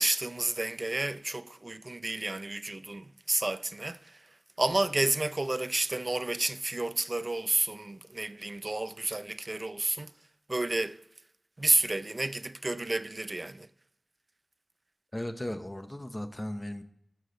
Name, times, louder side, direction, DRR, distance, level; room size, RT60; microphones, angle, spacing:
voice 1, 0.0-4.2 4.6-10.1 10.5-11.0 11.6-13.7, right 2 dB, 40° right, 0.5 m, -30 dB
voice 2, 15.1-16.8, left 1 dB, 20° left, 0.8 m, -36 dB
12.5 x 6.5 x 3.9 m
wide cardioid pair, 60°, 0 cm